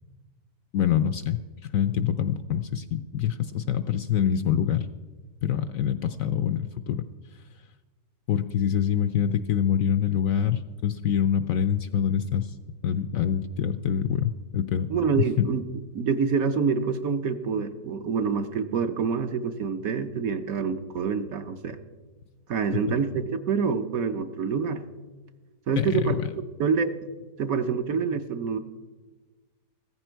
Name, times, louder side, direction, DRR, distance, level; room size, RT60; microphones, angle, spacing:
voice 1, 0.7-4.9 5.4-7.0 8.3-12.5 12.8-14.9 15.1-15.5 25.8-26.3, left 9 dB, 70° left, 11 dB, 0.8 m, -25 dB
voice 2, 14.9-15.6 15.9-21.8 22.5-24.8 25.7-26.2 26.6-26.9 27.4-28.6, right 5 dB, 60° right, 8 dB, 1.1 m, -26 dB
15.5 x 14.0 x 4.5 m, 1.3 s
omnidirectional pair, 1.8 m